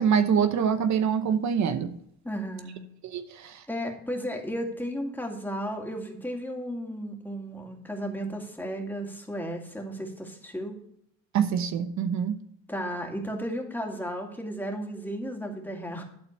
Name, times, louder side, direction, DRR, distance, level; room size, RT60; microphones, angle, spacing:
voice 1, 0.0-2.0 3.0-3.6 11.3-12.3, right 7 dB, 65° right, 0.9 m, -25 dB
voice 2, 2.2-2.8 3.7-10.7 12.7-16.0, equal, 5° left, 2.2 m, -34 dB
12.0 x 4.3 x 7.0 m
cardioid pair, 90°, 30 cm